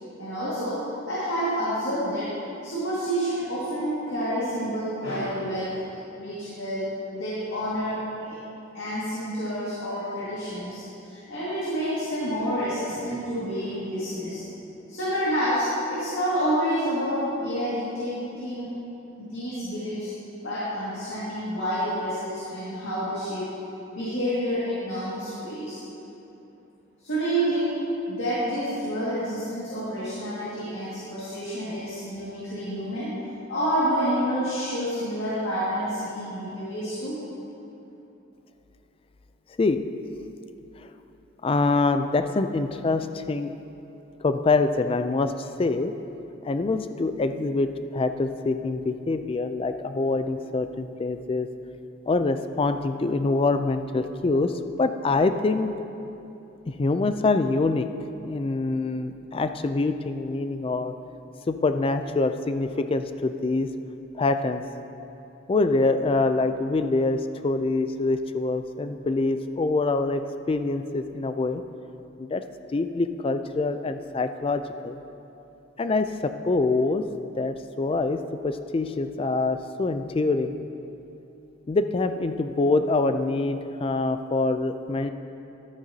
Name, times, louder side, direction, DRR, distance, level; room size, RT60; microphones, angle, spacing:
voice 1, 0.2-2.3 2.6-5.8 6.2-8.4 8.7-14.4 14.9-18.7 19.2-20.1 20.4-23.4 23.9-25.8 27.0-27.8 28.1-33.1 33.5-37.2, equal, 65° left, -10 dB, 2.0 m, -28 dB
voice 2, 41.4-43.5 44.2-45.9 46.4-51.5 52.1-54.5 54.8-55.7 56.7-57.9 58.2-60.9 61.5-63.7 64.1-64.6 65.5-70.2 70.5-71.6 72.2-72.4 72.7-75.0 75.8-77.0 77.4-80.6 81.7-85.1, left 3 dB, 25° left, 9 dB, 0.3 m, -25 dB
12.0 x 8.9 x 2.8 m, 3.0 s
head